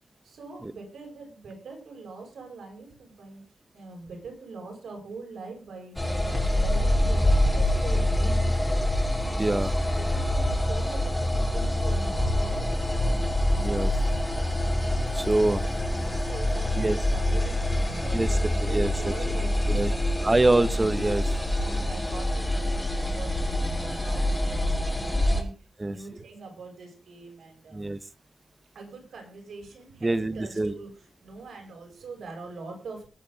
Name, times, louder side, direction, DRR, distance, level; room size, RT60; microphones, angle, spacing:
voice 1, 0.2-3.4 3.7-8.5 10.0-13.2 15.5-20.8 21.6-25.5 25.8-27.8 28.7-33.1, right 3 dB, 90° right, 2 dB, 7.8 m, -42 dB
sound 1, 6.0-25.4, left 1 dB, 10° left, 5.0 m, -25 dB
voice 2, 9.4-9.7 13.6-13.9 15.1-15.6 16.8-17.0 18.1-18.3 18.6-18.9 19.7-19.9 20.2-21.3 25.8-26.0 27.7-28.0 30.0-30.7, right 2 dB, 25° right, 15 dB, 1.0 m, -24 dB
21.0 x 8.5 x 4.0 m, 0.34 s
cardioid pair, 80°, 0 cm